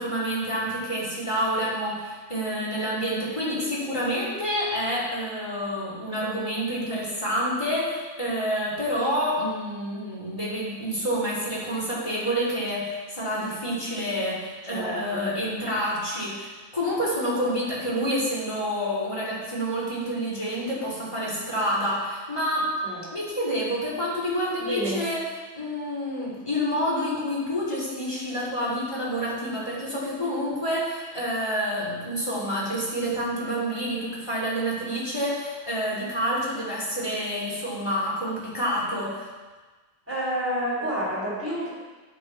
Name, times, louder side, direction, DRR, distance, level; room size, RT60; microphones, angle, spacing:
voice 1, 0.0-22.7 23.1-25.2 25.5-39.3, equal, 25° left, -7 dB, 2.7 m, -28 dB
voice 2, 14.7-15.3 22.8-23.0 24.6-25.0 40.1-41.7, equal, 10° right, -6 dB, 3.1 m, -29 dB
9.7 x 7.2 x 4.6 m, 1.3 s
omnidirectional pair, 1.4 m